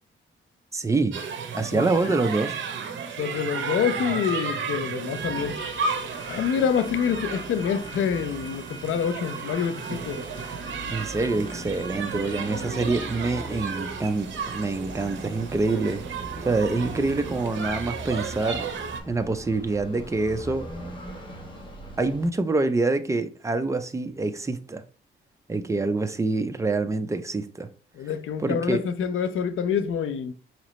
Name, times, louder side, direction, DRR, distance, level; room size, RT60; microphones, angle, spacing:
voice 1, 0.7-1.2 1.5-2.6 10.9-16.0 16.4-18.7 19.1-20.7 22.0-24.8 25.5-27.7 28.4-28.9, right 3 dB, 15° right, 0.5 m, -26 dB
sound 1, 1.1-19.0, right 5 dB, 65° right, 0.8 m, -33 dB
voice 2, 1.7-2.1 3.2-5.6 6.3-10.2 28.0-30.3, left 7 dB, 75° left, 0.5 m, -27 dB
sound 2, 5.1-22.3, right 1 dB, 25° left, 1.2 m, -40 dB
5.0 x 2.8 x 3.1 m
cardioid pair, 110°, 21 cm